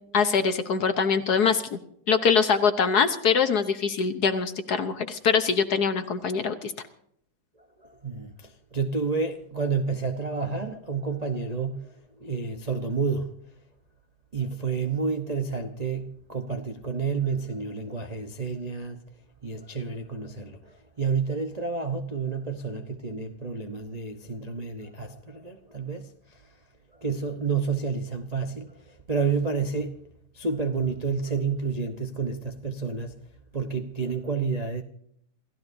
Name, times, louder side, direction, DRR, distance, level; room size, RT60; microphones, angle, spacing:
voice 1, 0.1-1.8 2.1-6.7, left 6 dB, 55° left, 1.2 m, -23 dB
voice 2, 7.8-13.4 14.3-19.0 19.4-26.5 26.9-30.0 30.3-33.2 33.5-34.8, right 5 dB, 45° right, 0.5 m, -30 dB
28.0 x 15.5 x 2.7 m
omnidirectional pair, 2.4 m